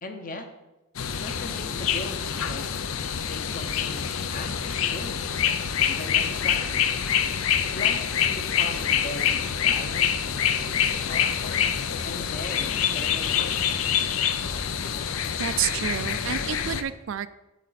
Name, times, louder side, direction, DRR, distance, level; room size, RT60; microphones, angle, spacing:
voice 1, 0.0-0.5 1.2-2.7 3.2-5.4 5.8-6.9 7.7-11.7 12.0-14.0, left 2 dB, 40° left, 5 dB, 0.9 m, -39 dB
sound 1, 1.0-16.8, left 8 dB, 75° left, 0.5 m, -26 dB
voice 2, 15.4-17.4, right 9 dB, 65° right, 14 dB, 0.4 m, -29 dB
8.4 x 7.6 x 4.0 m, 1.0 s
head